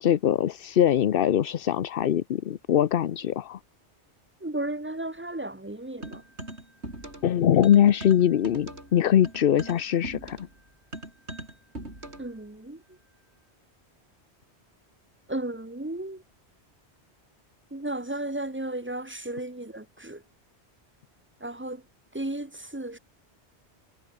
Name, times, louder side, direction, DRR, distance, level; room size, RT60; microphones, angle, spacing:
voice 1, 0.0-3.6 7.2-10.4, left 10 dB, 60° left, 0.8 m, -22 dB
voice 2, 4.4-6.2 12.2-12.8 15.3-16.2 17.7-20.2 21.4-21.8 22.1-23.0, right 1 dB, 10° right, 1.1 m, -34 dB
sound 1, 6.0-7.3 7.6-12.4, right 1 dB, 75° right, 7.4 m, -40 dB
omnidirectional pair, 1.1 m